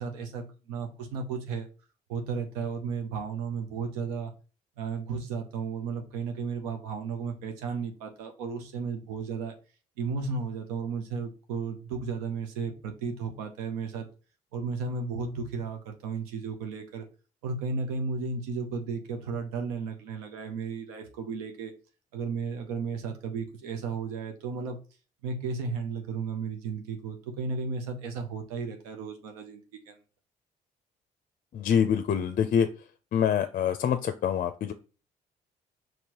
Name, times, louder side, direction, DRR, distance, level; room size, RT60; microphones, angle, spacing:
voice 1, 0.0-1.7 2.1-4.3 4.8-9.5 10.0-14.1 14.5-17.0 17.4-21.7 22.1-24.8 25.2-30.0, right 5 dB, 85° right, 5 dB, 0.6 m, -34 dB
voice 2, 31.5-32.7 33.1-34.7, left 8 dB, 50° left, 9 dB, 0.4 m, -25 dB
4.5 x 3.1 x 2.9 m, 0.34 s
hypercardioid pair, 55°, 19 cm